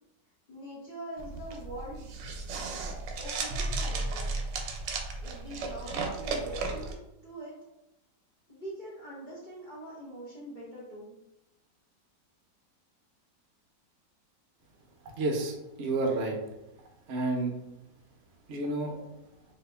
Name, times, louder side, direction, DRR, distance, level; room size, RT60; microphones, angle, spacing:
voice 1, 0.5-2.1 2.5-4.3 5.2-7.0 7.2-7.5 8.5-11.1, right 1 dB, 65° left, -7 dB, 0.4 m, -43 dB
sound 1, 1.2-6.9, right 3 dB, 85° right, 1.2 m, -34 dB
voice 2, 15.2-16.4 17.1-17.5 18.5-19.0, right 2 dB, 65° right, 1 dB, 0.7 m, -30 dB
2.8 x 2.7 x 3.3 m, 0.92 s
omnidirectional pair, 1.9 m